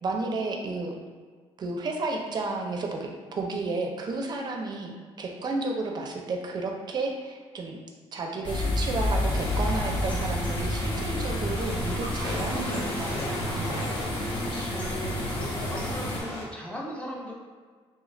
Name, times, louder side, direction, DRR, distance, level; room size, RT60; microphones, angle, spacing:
voice 1, 0.0-1.0 1.6-7.8 8.1-13.9, right 3 dB, 40° right, 2 dB, 0.5 m, -32 dB
sound 1, 8.4-16.2, left 1 dB, 50° left, 0.8 m, -29 dB
sound 2, 9.2-16.4, left 1 dB, 80° left, 1.1 m, -37 dB
voice 2, 14.4-15.2 15.7-17.3, equal, 10° left, -3 dB, 0.7 m, -38 dB
3.2 x 2.3 x 3.1 m, 1.5 s
cardioid pair, 100°, 11 cm